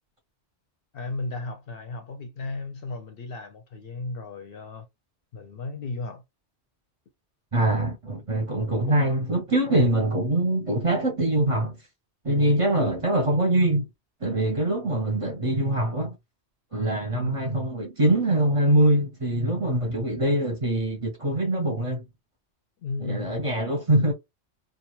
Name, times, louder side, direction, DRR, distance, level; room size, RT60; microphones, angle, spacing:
voice 1, 0.9-4.9 5.3-6.2 8.9-9.0 17.1-17.4 22.8-23.5, left 3 dB, 65° left, 0.7 m, -35 dB
voice 2, 7.5-11.8 12.2-13.9 14.2-16.2 16.7-22.0 23.0-24.1, right 1 dB, 35° right, 0.7 m, -23 dB
2.4 x 2.3 x 3.0 m
omnidirectional pair, 1.2 m